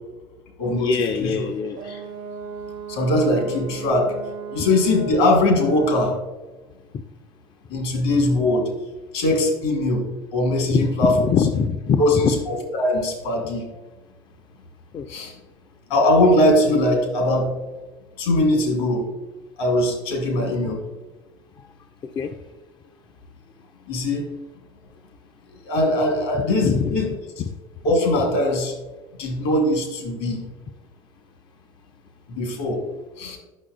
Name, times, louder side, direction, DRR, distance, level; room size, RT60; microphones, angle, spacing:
voice 1, 0.7-2.1 4.6-4.7 6.9-7.0 10.7-12.3 14.9-15.1 22.0-22.4 26.6-26.9 27.4-27.5, left 6 dB, 35° left, 7 dB, 0.4 m, -23 dB
Brass instrument, 1.7-6.2, right 6 dB, 55° right, 0.7 m, -35 dB
voice 2, 2.9-4.1 4.5-6.2 7.7-8.7 9.1-11.1 12.0-12.3 12.7-13.6 15.1-15.3 15.9-17.5 18.2-19.1 19.6-20.9 23.9-24.2 25.6-27.0 27.8-28.7 29.2-30.4 32.3-32.8 33.2-33.4, left 1 dB, 70° left, 2 dB, 1.6 m, -21 dB
9.2 x 5.8 x 2.5 m, 1.2 s
hypercardioid pair, 70°, 13 cm